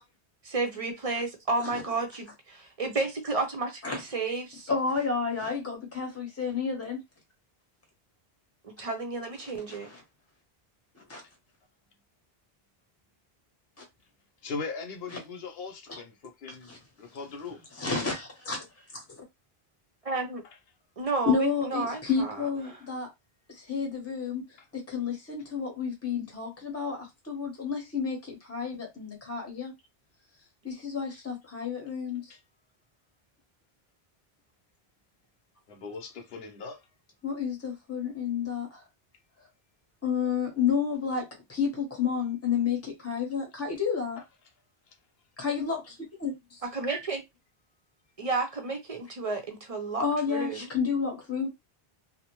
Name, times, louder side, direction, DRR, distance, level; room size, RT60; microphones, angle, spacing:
voice 1, 0.4-4.7 8.6-9.9 20.0-20.4 21.0-22.8 46.6-47.2 48.2-50.7, right 3 dB, 40° right, 0.6 m, -32 dB
voice 2, 4.7-7.0 9.7-10.0 10.9-11.2 13.8-13.9 15.9-16.0 16.7-16.8 17.8-18.6 18.9-19.2 21.3-23.1 23.5-24.5 24.7-29.7 30.6-32.3 37.2-38.8 40.0-44.2 45.4-46.6 50.0-51.5, left 6 dB, 15° left, 0.8 m, -31 dB
voice 3, 14.4-16.7 17.0-17.7 24.6-24.7 32.3-32.4 35.7-36.9 44.2-44.3 44.9-45.0, left 4 dB, 75° left, 0.9 m, -39 dB
2.5 x 2.0 x 2.9 m
omnidirectional pair, 1.0 m